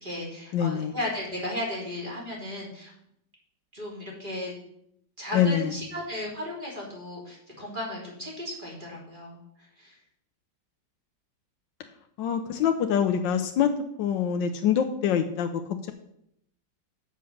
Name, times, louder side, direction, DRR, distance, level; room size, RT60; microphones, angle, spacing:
voice 1, 0.0-2.9 3.7-4.5 5.2-9.4 9.8-10.0, left 1 dB, 25° right, -4 dB, 3.3 m, -35 dB
voice 2, 0.5-0.9 5.3-5.8 12.2-13.7 14.0-15.9, left 8 dB, 85° left, 6 dB, 1.4 m, -25 dB
7.9 x 6.9 x 6.4 m, 0.74 s
omnidirectional pair, 2.0 m